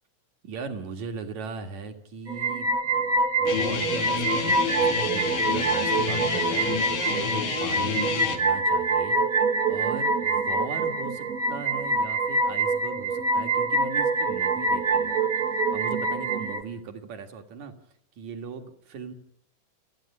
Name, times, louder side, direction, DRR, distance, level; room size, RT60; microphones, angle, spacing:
voice 1, 0.4-3.1 3.4-9.2 9.7-17.7 18.2-19.1, right 5 dB, 60° right, 5 dB, 3.1 m, -39 dB
sound 1, 2.3-16.6, right 3 dB, 80° right, 0.7 m, -25 dB
Guitar, 3.5-8.4, left 7 dB, 90° left, 3.8 m, -29 dB
28.5 x 9.8 x 9.8 m, 0.74 s
omnidirectional pair, 3.9 m